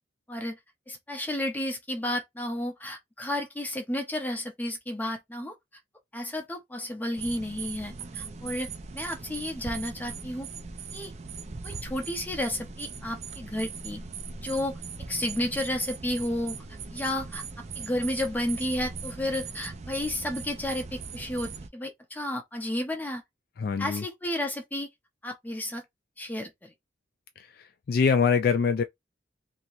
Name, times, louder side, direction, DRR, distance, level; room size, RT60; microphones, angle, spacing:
voice 1, 0.9-5.5 6.1-10.5 10.9-11.1 11.6-14.0 14.4-14.7 15.1-16.6 16.9-17.4 17.8-23.2 23.8-24.9 25.2-25.8 26.2-26.7, left 1 dB, 10° left, 0.8 m, -32 dB
sound 1, 7.2-21.7, right 5 dB, 40° right, 0.5 m, -40 dB
voice 2, 23.6-24.0 27.4-28.8, left 5 dB, 60° left, 0.3 m, -24 dB
3.0 x 2.9 x 2.6 m
head